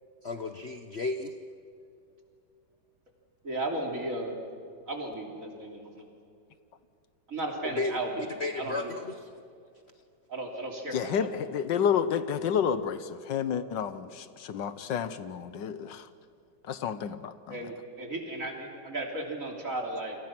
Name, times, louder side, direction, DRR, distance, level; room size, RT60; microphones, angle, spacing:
voice 1, 0.2-1.3 7.8-9.2, left 3 dB, 45° left, 6 dB, 1.0 m, -33 dB
voice 2, 3.4-4.3 4.9-6.1 7.3-8.3 8.6-8.9 10.3-11.3 17.5-20.2, right 2 dB, 45° right, 1 dB, 3.7 m, -35 dB
voice 3, 10.9-16.1 16.6-17.7, left 8 dB, 75° left, 12 dB, 1.6 m, -30 dB
29.0 x 26.0 x 6.1 m, 2.4 s
omnidirectional pair, 1.9 m